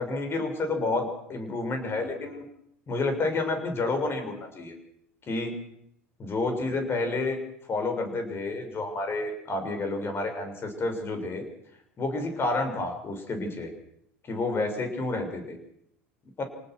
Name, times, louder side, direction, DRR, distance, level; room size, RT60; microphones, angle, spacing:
voice 1, 0.0-2.4 2.9-4.7 5.3-5.6 6.2-7.4 7.7-11.4 12.0-13.7 14.3-15.6 16.4-16.5, left 3 dB, 30° left, 6 dB, 6.7 m, -29 dB
27.5 x 19.0 x 6.4 m, 0.73 s
hypercardioid pair, 75°, 7 cm